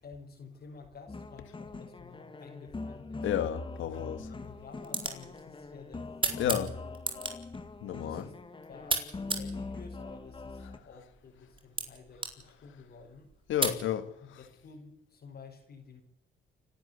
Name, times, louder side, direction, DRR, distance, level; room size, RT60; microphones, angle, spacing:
voice 1, 0.0-3.3 4.0-6.8 7.9-8.3 8.7-13.3 14.4-16.0, left 5 dB, 55° left, 5.6 m, -51 dB
sound 1, 1.1-10.8, left 3 dB, 25° left, 2.2 m, -43 dB
voice 2, 3.2-4.2 6.4-6.7 7.8-8.3 13.5-14.4, left 10 dB, 85° left, 2.3 m, -31 dB
sound 2, 3.7-13.8, right 3 dB, 25° right, 4.5 m, -38 dB
29.5 x 11.5 x 8.5 m
cardioid pair, 90°, 20 cm